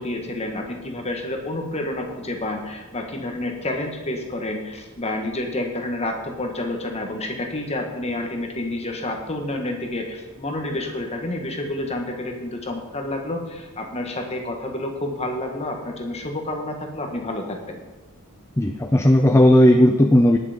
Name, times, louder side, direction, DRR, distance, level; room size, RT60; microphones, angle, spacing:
voice 1, 0.0-17.8, left 1 dB, 30° left, 3 dB, 1.7 m, -29 dB
voice 2, 18.6-20.4, equal, 10° left, 5 dB, 0.5 m, -15 dB
18.5 x 6.9 x 5.2 m, 1.2 s
head